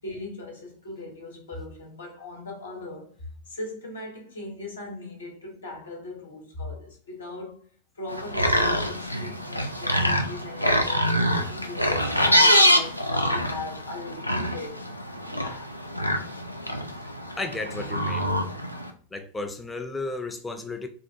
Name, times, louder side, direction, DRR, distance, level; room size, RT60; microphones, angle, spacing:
voice 1, 0.0-3.1 3.5-7.6 7.9-14.8 15.2-15.8, left 2 dB, 70° left, 0.9 m, -39 dB
sound 1, 8.1-18.9, equal, 90° left, 0.3 m, -25 dB
voice 2, 17.4-18.3 19.1-20.9, left 3 dB, 10° left, 0.5 m, -33 dB
3.4 x 2.4 x 2.6 m
figure-of-eight pair, 90°, 0 cm